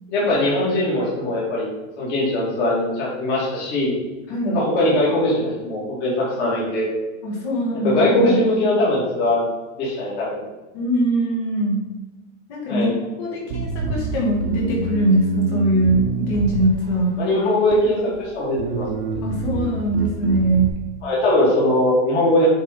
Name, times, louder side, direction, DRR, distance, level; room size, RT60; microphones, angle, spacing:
voice 1, 0.1-1.7 2.0-4.0 4.4-6.9 7.8-9.4 9.8-10.4 12.7-12.9 17.2-19.1 21.0-22.5, left 1 dB, 25° left, -6 dB, 2.0 m, -20 dB
voice 2, 4.3-4.6 7.2-8.4 10.7-11.8 12.5-17.2 19.2-20.7, right 1 dB, 50° left, -2 dB, 2.2 m, -21 dB
Bass guitar, 13.5-17.1 17.7-18.2 18.6-20.7, right 3 dB, 55° right, 1.0 m, -27 dB
7.8 x 3.8 x 5.0 m, 1.2 s
supercardioid pair, 175°, 39 cm